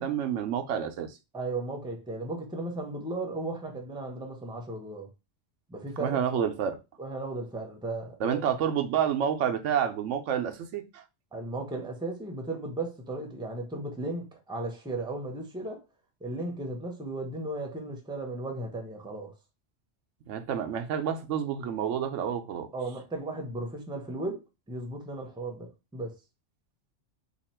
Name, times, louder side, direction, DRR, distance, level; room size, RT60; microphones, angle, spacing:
voice 1, 0.0-1.2 6.0-6.8 8.2-11.0 20.3-22.7, right 8 dB, 80° right, 0.9 m, -29 dB
voice 2, 1.3-5.1 5.7-6.4 7.0-8.4 11.3-15.8 16.2-19.3 22.7-26.2, right 2 dB, 5° right, 0.6 m, -35 dB
2.9 x 2.4 x 4.2 m
omnidirectional pair, 1.2 m